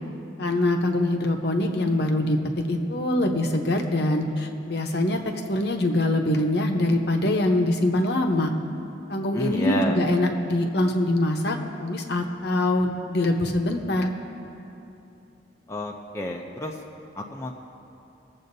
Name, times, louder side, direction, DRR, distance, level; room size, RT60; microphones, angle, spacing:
voice 1, 0.4-8.5 9.1-14.1, left 1 dB, 60° left, 3 dB, 0.8 m, -24 dB
voice 2, 9.3-10.0 15.7-16.8 17.1-17.6, left 1 dB, 15° left, 0 dB, 0.5 m, -29 dB
22.5 x 7.6 x 2.7 m, 2.8 s
head